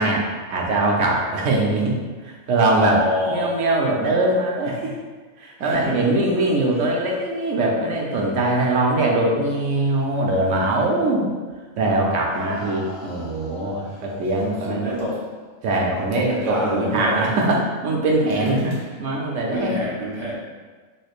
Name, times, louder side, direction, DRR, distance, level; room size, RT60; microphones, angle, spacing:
voice 1, 0.0-2.0 2.2-3.0 3.3-4.9 5.4-11.3 11.8-14.9 15.6-18.7 19.0-19.7, right 2 dB, 70° right, -1 dB, 0.9 m, -22 dB
voice 2, 2.8-3.6 5.6-6.1 6.7-6.8 13.9-15.3 16.1-17.4 18.3-18.9 19.5-20.4, equal, 25° right, -9 dB, 1.0 m, -28 dB
sound 1, 10.4-10.9 11.5-11.6 12.3-14.4 16.5-16.7, left 3 dB, 85° left, 1.2 m, -38 dB
3.3 x 3.1 x 2.4 m, 1.4 s
omnidirectional pair, 1.4 m